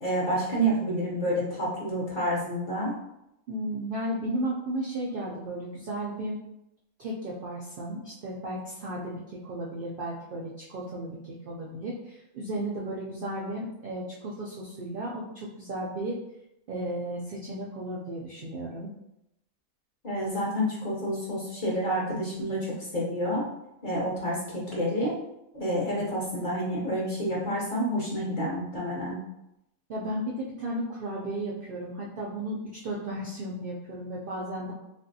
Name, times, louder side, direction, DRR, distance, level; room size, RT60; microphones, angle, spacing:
voice 1, 0.0-3.0 20.0-23.4 23.8-25.1 25.5-29.2, equal, 45° left, -6 dB, 0.7 m, -29 dB
voice 2, 3.5-6.4 7.0-16.2 16.7-18.9 29.9-34.7, right 1 dB, 70° right, -4 dB, 0.5 m, -34 dB
3.1 x 2.5 x 2.6 m, 0.85 s
omnidirectional pair, 1.5 m